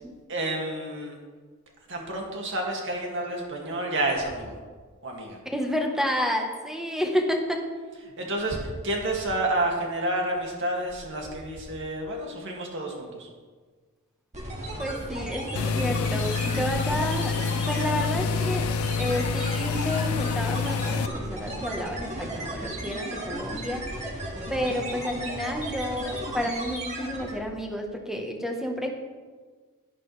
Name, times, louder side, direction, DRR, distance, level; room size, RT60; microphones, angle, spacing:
voice 1, 0.3-1.1 1.9-4.6 5.0-5.4 8.2-13.3, right 1 dB, 60° right, 0 dB, 2.3 m, -29 dB
voice 2, 5.4-7.6 14.8-17.3 17.6-18.7 19.0-23.8 24.5-28.9, left 1 dB, ahead, 2 dB, 1.2 m, -30 dB
sound 1, 14.3-27.5, right 1 dB, 30° right, 2.0 m, -35 dB
sound 2, 15.6-21.1, left 5 dB, 70° left, 0.4 m, -27 dB
11.5 x 10.5 x 3.4 m, 1.5 s
head